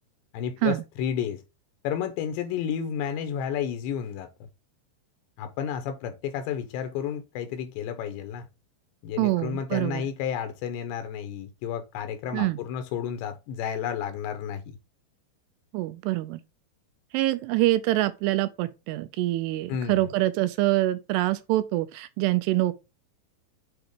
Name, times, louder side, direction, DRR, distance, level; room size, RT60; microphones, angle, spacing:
voice 1, 0.3-1.4 1.8-4.3 5.4-8.5 9.0-14.8 19.7-20.1, left 8 dB, 80° left, 3.0 m, -31 dB
voice 2, 9.2-10.0 12.3-12.6 15.7-16.4 17.1-22.7, right 17 dB, 80° right, 2.5 m, -25 dB
7.8 x 3.0 x 5.1 m
omnidirectional pair, 5.1 m